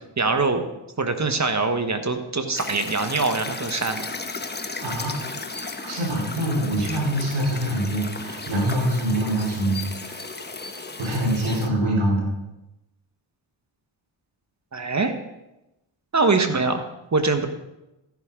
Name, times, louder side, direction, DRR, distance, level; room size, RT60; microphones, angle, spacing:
voice 1, 0.2-0.6 1.0-4.0 14.7-15.1 16.1-16.8 17.1-17.5, right 3 dB, 35° right, 7 dB, 1.4 m, -23 dB
sound 1, 2.6-11.7, left 3 dB, 20° left, 1.1 m, -35 dB
voice 2, 4.8-5.1 5.8-10.2 11.0-12.3, right 1 dB, 75° right, -3 dB, 4.7 m, -24 dB
13.5 x 11.0 x 3.8 m, 0.94 s
cardioid pair, 65°, 50 cm